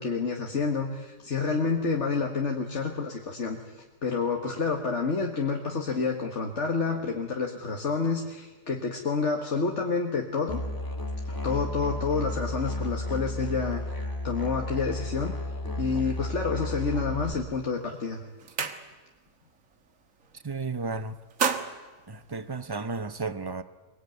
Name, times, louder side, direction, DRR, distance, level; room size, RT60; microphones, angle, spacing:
voice 1, 0.0-10.6 11.3-13.8 14.2-15.4 15.8-18.2, left 4 dB, 50° left, 1.9 m, -29 dB
Musical instrument, 10.5-17.3, left 1 dB, 15° left, 2.1 m, -33 dB
sound 1, 17.6-17.8 18.1-19.3 19.6-19.9 20.2-20.8 21.1-23.0, right 6 dB, 55° right, 1.7 m, -33 dB
voice 2, 20.4-21.1 22.1-23.6, right 4 dB, 25° right, 0.5 m, -33 dB
23.0 x 21.5 x 9.4 m
omnidirectional pair, 1.7 m